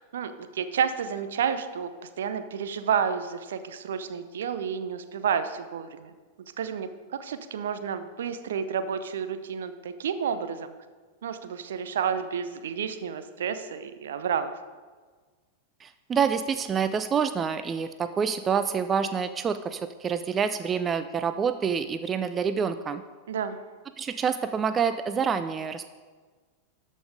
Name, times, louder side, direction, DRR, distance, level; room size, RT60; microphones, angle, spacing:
voice 1, 0.0-1.9 2.2-6.1 6.6-10.7 11.2-14.5 23.3-23.6, right 7 dB, 60° right, 10 dB, 0.7 m, -30 dB
voice 2, 15.8-23.0 24.0-25.8, right 6 dB, 20° right, 10 dB, 0.4 m, -27 dB
13.0 x 5.4 x 4.9 m, 1.4 s
figure-of-eight pair, 90°, 0 cm